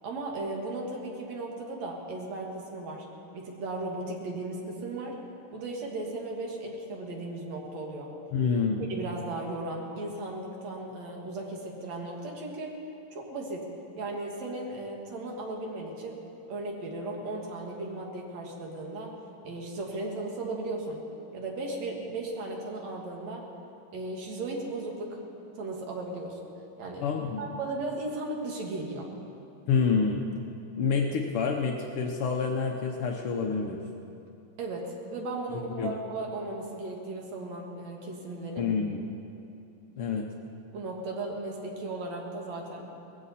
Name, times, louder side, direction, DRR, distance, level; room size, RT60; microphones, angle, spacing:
voice 1, 0.0-3.1 3.3-5.2 5.5-8.1 8.9-12.7 13.1-13.6 14.0-16.2 16.5-19.1 19.4-21.0 21.3-23.4 23.9-25.2 25.6-26.5 26.8-27.1 27.4-29.1 34.6-38.7 40.7-42.9, right 2 dB, 60° right, -1 dB, 2.9 m, -36 dB
voice 2, 8.3-8.9 27.0-27.6 29.7-30.2 30.7-33.8 35.8-35.9 38.6-39.0 40.0-40.2, left 5 dB, 85° left, 2 dB, 1.2 m, -27 dB
19.5 x 15.5 x 4.2 m, 2.7 s
omnidirectional pair, 3.6 m